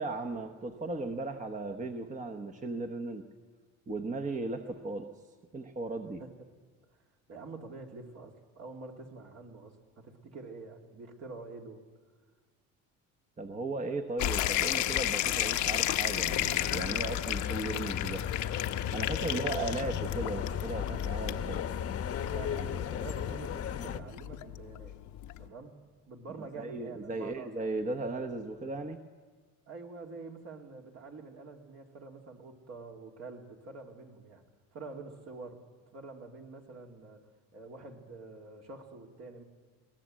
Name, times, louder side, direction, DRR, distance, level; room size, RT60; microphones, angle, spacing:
voice 1, 0.0-3.2 3.9-5.1 5.5-6.2 13.4-18.2 18.9-21.6 26.6-29.0, right 2 dB, 25° right, 5 dB, 1.1 m, -36 dB
voice 2, 7.3-11.8 19.2-19.7 22.3-25.0 25.4-25.8 26.1-27.7 29.7-34.4 34.7-35.6 35.9-37.3 37.5-39.4, right 3 dB, 55° right, 1 dB, 2.8 m, -46 dB
sound 1, 14.2-25.5, left 13 dB, 75° left, 1.0 m, -33 dB
sound 2, 16.3-24.0, left 9 dB, 50° left, 1.0 m, -35 dB
22.5 x 18.0 x 7.6 m, 1.5 s
cardioid pair, 95°, 31 cm